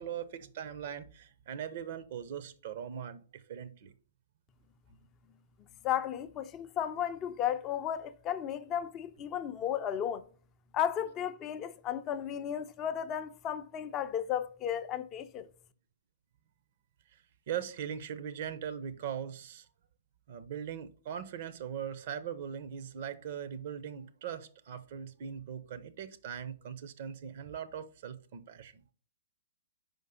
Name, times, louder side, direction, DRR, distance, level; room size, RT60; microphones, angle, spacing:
voice 1, 0.0-3.9 17.1-17.2 17.5-19.7 20.3-28.8, right 8 dB, 45° right, 0.6 m, -40 dB
voice 2, 5.8-10.3 10.7-15.5, left 9 dB, 25° left, 0.5 m, -34 dB
5.3 x 5.2 x 3.7 m
figure-of-eight pair, 115°, 0 cm